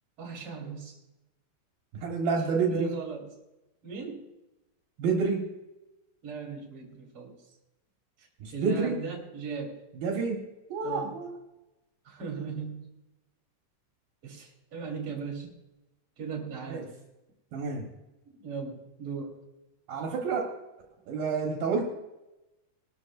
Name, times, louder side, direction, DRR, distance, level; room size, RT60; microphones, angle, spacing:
voice 1, 0.2-1.0 2.7-3.2 3.8-4.3 6.2-7.3 8.2-9.8 10.8-11.2 12.1-12.9 14.2-15.5 16.2-16.9 18.3-19.3, right 5 dB, 35° right, 0 dB, 3.6 m, -38 dB
voice 2, 2.0-2.9 5.0-5.5 8.4-9.0 10.0-10.4 10.7-11.4 16.7-16.9 17.5-17.9 19.9-20.5 21.1-21.8, right 5 dB, 70° right, -1 dB, 3.1 m, -29 dB
22.0 x 12.5 x 2.5 m, 0.99 s
omnidirectional pair, 4.5 m